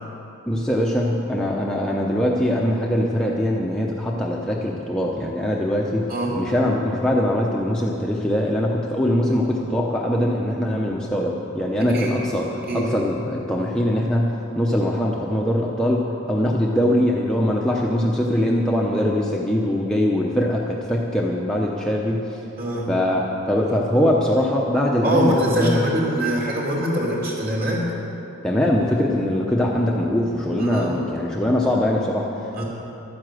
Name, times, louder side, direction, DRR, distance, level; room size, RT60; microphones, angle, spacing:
voice 1, 0.5-6.1 6.4-12.5 12.7-22.4 22.9-25.8 28.4-32.6, left 1 dB, 5° left, -3 dB, 0.7 m, -22 dB
voice 2, 22.6-22.9 25.0-27.9 30.6-31.0 32.5-32.6, equal, 45° right, -3 dB, 3.1 m, -23 dB
12.5 x 9.9 x 7.7 m, 3.0 s
head